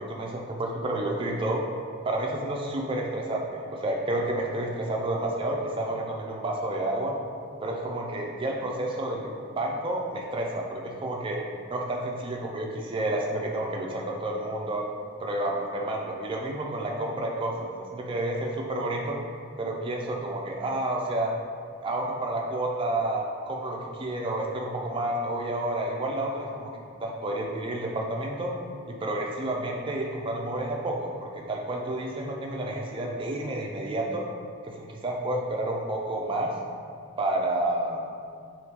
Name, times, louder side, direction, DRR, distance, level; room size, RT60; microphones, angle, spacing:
voice 1, 0.0-1.6 2.0-7.1 7.6-11.4 11.7-14.8 15.2-19.2 19.6-21.3 21.8-26.7 27.0-28.5 28.9-34.2 34.6-36.5 37.2-38.0, right 1 dB, 25° right, -1 dB, 0.3 m, -30 dB
3.5 x 2.4 x 2.8 m, 2.1 s
head